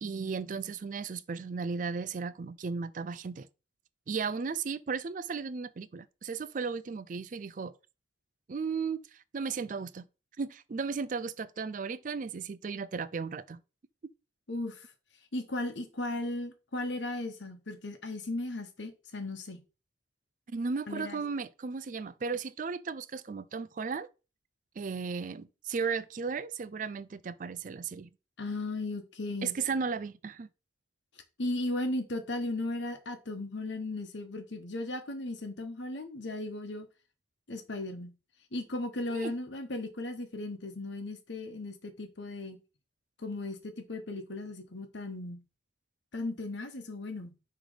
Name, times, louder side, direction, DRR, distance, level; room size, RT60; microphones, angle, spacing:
voice 1, 0.0-3.5 4.1-7.7 8.5-10.0 10.4-13.6 20.5-24.1 24.8-28.1 29.4-30.5 39.1-39.3, right 5 dB, 40° right, 0.4 m, -35 dB
voice 2, 14.5-14.9 15.3-19.6 20.9-21.2 28.4-29.5 31.4-36.9 37.5-38.1 38.5-42.6 43.2-45.4 46.1-47.4, left 2 dB, 70° left, 1.1 m, -36 dB
6.2 x 3.2 x 5.0 m
head